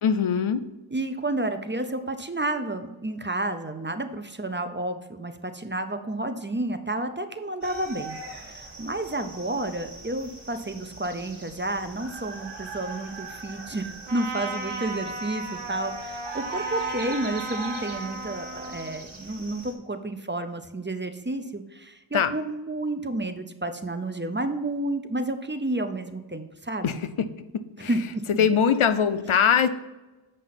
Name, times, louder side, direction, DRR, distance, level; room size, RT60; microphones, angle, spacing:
voice 1, 0.0-0.6 22.1-22.3 26.8-27.9 28.4-29.7, left 7 dB, 80° left, 11 dB, 0.6 m, -22 dB
voice 2, 0.9-8.2 8.5-26.9 27.9-28.0 28.3-28.5, right 2 dB, 25° right, 8 dB, 0.7 m, -31 dB
sound 1, 7.6-19.7, right 3 dB, 55° right, 1.7 m, -41 dB
Trumpet, 14.1-19.0, right 2 dB, 90° right, 1.2 m, -35 dB
7.6 x 5.3 x 4.1 m, 1.1 s
wide cardioid pair, 45°, 48 cm